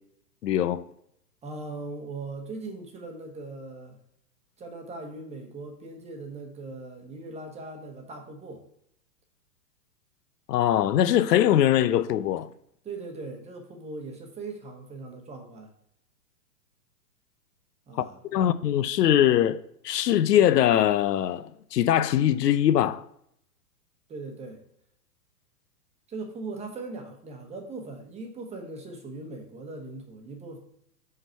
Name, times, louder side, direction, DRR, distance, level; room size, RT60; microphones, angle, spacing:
voice 1, 0.4-0.8 10.5-12.5 17.9-19.6 19.8-23.0, left 11 dB, 75° left, 0.7 m, -22 dB
voice 2, 1.4-4.0 4.6-8.6 12.8-15.7 17.9-18.5 24.1-24.6 26.1-30.6, right 3 dB, 15° right, 1.1 m, -39 dB
5.8 x 5.5 x 4.5 m
hypercardioid pair, 135°, 48 cm